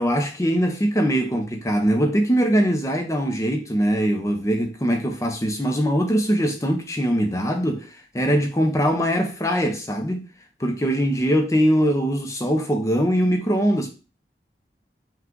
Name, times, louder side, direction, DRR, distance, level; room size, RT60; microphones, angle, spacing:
voice 1, 0.0-10.3 10.6-13.9, equal, 15° left, 0.6 m, -22 dB
5.8 x 2.4 x 3.7 m
head